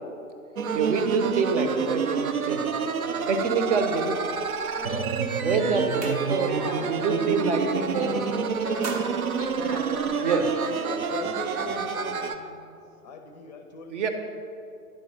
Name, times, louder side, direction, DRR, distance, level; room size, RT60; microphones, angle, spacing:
sound 1, 0.5-12.3, right 5 dB, 65° right, 0.7 m, -28 dB
voice 1, 0.7-2.6 3.3-4.1 5.4-6.0 6.3-6.6 6.9-8.2 10.2-10.4 13.9-14.1, right 5 dB, 50° right, 6 dB, 1.0 m, -26 dB
voice 2, 4.7-7.2 7.9-11.9 12.3-12.6, left 1 dB, 85° right, 0 dB, 1.4 m, -39 dB
sound 2, 5.8-6.7 7.1-7.3 7.6-8.2 8.5-10.4, right 2 dB, 25° right, 0.7 m, -40 dB
voice 3, 10.8-12.2 13.0-13.9, left 4 dB, 30° left, 5 dB, 0.5 m, -38 dB
9.9 x 4.7 x 5.7 m, 2.6 s
figure-of-eight pair, 105°, 46 cm